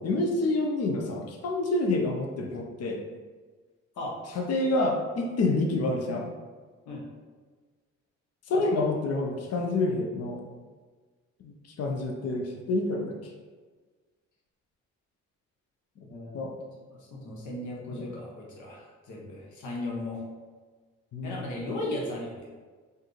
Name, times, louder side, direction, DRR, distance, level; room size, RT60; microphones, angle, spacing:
voice 1, 0.0-3.0 4.4-6.3 8.5-10.4 11.4-13.1 16.3-16.5 17.9-18.1 21.1-21.5, left 2 dB, 55° left, 2 dB, 0.7 m, -28 dB
voice 2, 4.0-4.4 6.9-7.1 8.5-8.7 16.0-16.5 17.1-20.2 21.2-22.5, left 1 dB, 75° left, -2 dB, 1.1 m, -36 dB
4.5 x 2.6 x 3.2 m, 1.4 s
cardioid pair, 90°, 30 cm